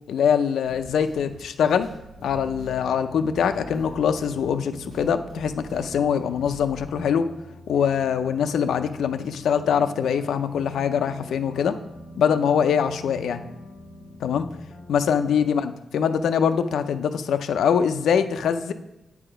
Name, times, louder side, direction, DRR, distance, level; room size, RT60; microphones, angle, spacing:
voice 1, 0.1-1.9 2.2-7.3 7.7-11.8 12.2-13.4 14.2-14.5 14.9-18.7, left 7 dB, 75° left, 9 dB, 0.5 m, -23 dB
sound 1, 0.6-6.9, right 1 dB, 55° right, 1.9 m, -46 dB
sound 2, 2.2-15.6, equal, 25° left, 0.8 m, -43 dB
8.6 x 4.8 x 5.0 m, 0.99 s
wide cardioid pair, 180°, 0 cm